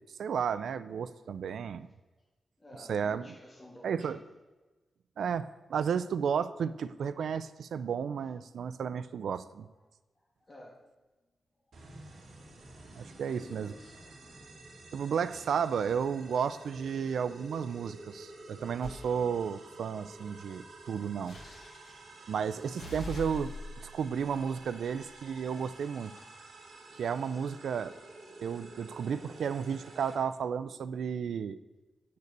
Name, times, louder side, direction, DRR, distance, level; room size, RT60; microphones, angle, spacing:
voice 1, 0.2-1.9 2.9-3.3 3.8-4.2 5.2-9.7 13.0-13.7 14.9-21.4 22.3-23.5 23.8-26.1 27.0-27.9 28.4-31.6, right 7 dB, 90° right, 13 dB, 0.4 m, -33 dB
voice 2, 2.6-4.3 10.2-10.8 11.7-12.5 12.9-14.0 16.9-17.1 18.1-18.3 20.2-21.1 21.5-21.7 22.2-22.5 23.9-24.0 24.8-25.1 26.0-26.5, left 1 dB, 20° left, 0 dB, 1.8 m, -54 dB
sound 1, 11.7-30.1, right 2 dB, 65° right, 2.1 m, -51 dB
sound 2, 18.8-19.1 21.3-22.0 22.7-25.3, left 2 dB, 80° left, 2.3 m, -44 dB
8.4 x 6.7 x 6.7 m, 1.2 s
wide cardioid pair, 155°, 0 cm